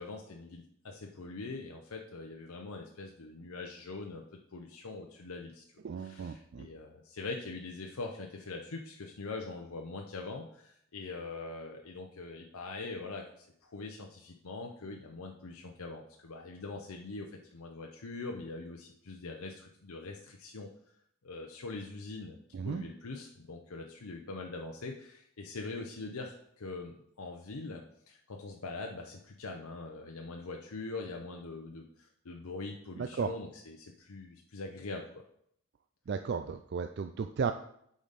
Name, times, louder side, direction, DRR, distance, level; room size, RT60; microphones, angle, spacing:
voice 1, 0.0-4.2 4.5-5.6 6.0-20.7 21.2-22.4 22.6-35.1, left 3 dB, 80° left, 1 dB, 0.7 m, -43 dB
voice 2, 5.8-6.7 22.5-22.9 33.0-33.3 36.1-37.5, right 5 dB, 50° right, 8 dB, 0.3 m, -34 dB
8.6 x 5.1 x 4.1 m, 0.71 s
head